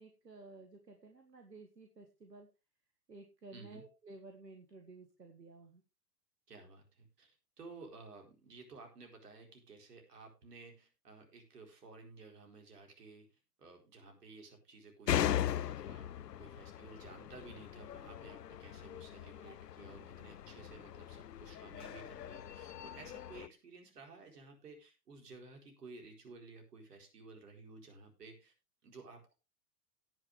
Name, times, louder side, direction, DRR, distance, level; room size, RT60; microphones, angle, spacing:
voice 1, 0.0-2.5 3.1-5.8, right 3 dB, 90° right, 5 dB, 2.0 m, -54 dB
voice 2, 3.5-3.8 6.5-28.5 28.8-29.3, right 3 dB, 75° right, 3 dB, 4.5 m, -54 dB
sound 1, 15.1-23.5, left 11 dB, 85° left, 0.6 m, -39 dB
17.5 x 6.6 x 3.5 m, 0.28 s
figure-of-eight pair, 105°, 48 cm